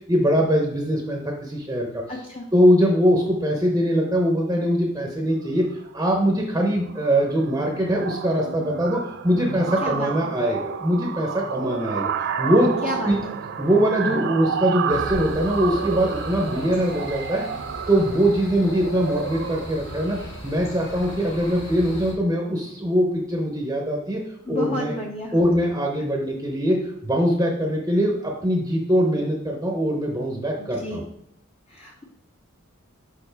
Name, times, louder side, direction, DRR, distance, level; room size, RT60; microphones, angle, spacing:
voice 1, 0.1-2.0 2.5-5.7 5.9-13.2 13.6-17.4 17.9-20.2 20.4-24.2 24.5-25.0 25.3-31.0, equal, 15° right, 0 dB, 0.7 m, -22 dB
voice 2, 2.1-2.5 9.8-10.3 12.8-13.3 24.5-25.3 30.6-31.1 31.7-32.0, left 1 dB, 30° left, -1 dB, 0.6 m, -32 dB
sound 1, 5.7-6.0 6.3-6.6 6.9-21.7, right 6 dB, 55° right, 0.3 m, -31 dB
sound 2, 14.9-22.1, left 1 dB, 60° left, 1.7 m, -38 dB
6.5 x 5.2 x 3.3 m, 0.71 s
head